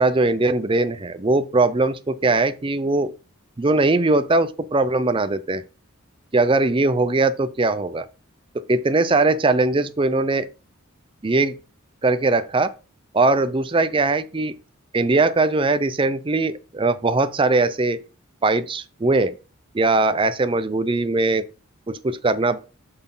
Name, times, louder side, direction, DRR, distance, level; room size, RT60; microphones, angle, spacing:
voice 1, 0.0-3.1 3.6-5.6 6.3-8.1 8.5-10.5 11.2-11.5 12.0-12.7 13.1-14.5 14.9-18.0 18.4-19.3 19.7-21.4 21.9-22.6, right 3 dB, 25° right, 0.5 m, -20 dB
7.8 x 6.0 x 3.7 m
head